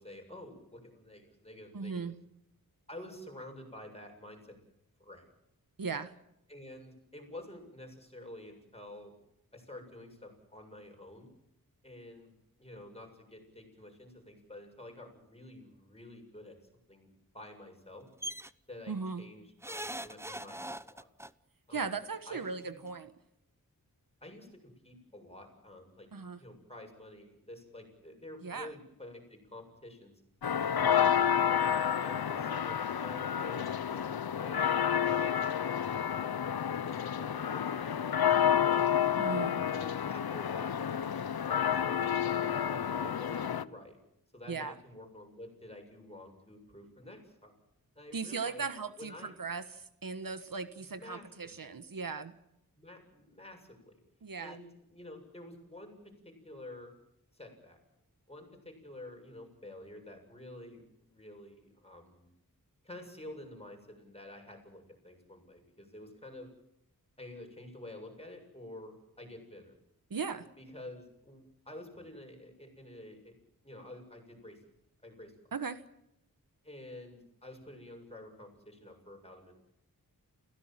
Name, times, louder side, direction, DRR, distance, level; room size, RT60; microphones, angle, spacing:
voice 1, 0.0-2.0 2.9-4.6 5.0-5.3 6.5-9.1 9.5-11.3 11.8-16.6 16.9-18.1 18.7-21.1 21.7-22.0 22.3-22.8 24.2-26.1 26.4-30.2 30.7-31.3 32.0-34.8 35.0-39.0 39.7-44.0 44.3-47.5 48.0-48.6 49.0-49.3 50.8-51.7 52.8-54.0 54.4-56.9 57.3-57.8 58.3-62.3 62.8-66.5 67.2-69.7 70.6-73.4 73.6-74.6 75.0-75.3 76.6-79.5, left 1 dB, 15° left, 3 dB, 7.5 m, -49 dB
voice 2, 1.7-2.1 5.8-6.1 18.9-19.2 21.7-23.1 26.1-26.4 28.4-28.7 39.2-39.6 44.5-44.8 48.1-52.3 54.2-54.6 70.1-70.5 75.5-75.8, right 5 dB, 65° right, 11 dB, 1.4 m, -37 dB
sound 1, 18.2-18.5 19.6-21.3 22.5-22.6 22.9-23.0, right 1 dB, 5° right, 0.8 m, -40 dB
sound 2, 30.4-43.6, left 8 dB, 80° left, 0.9 m, -30 dB
29.5 x 16.5 x 7.7 m, 0.82 s
wide cardioid pair, 80°, 36 cm